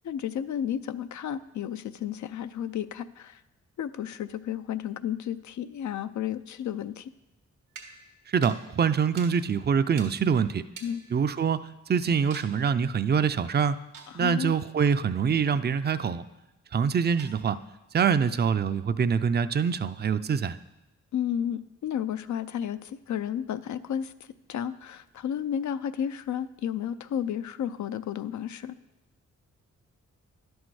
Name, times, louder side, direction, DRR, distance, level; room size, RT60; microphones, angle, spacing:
voice 1, 0.0-3.4 3.8-7.1 10.8-11.1 14.1-14.6 21.1-24.1 24.5-28.7, left 9 dB, 70° left, 12 dB, 0.5 m, -32 dB
sound 1, 7.7-11.8 12.3-12.6 13.9-14.5 17.2-17.8, right 4 dB, 90° right, 1.5 m, -49 dB
voice 2, 8.3-10.6 11.1-11.6 11.9-13.8 14.1-16.2 16.7-17.6 17.9-20.6, right 6 dB, 35° right, 12 dB, 0.5 m, -25 dB
11.0 x 6.3 x 4.8 m, 0.98 s
cardioid pair, 65°, 30 cm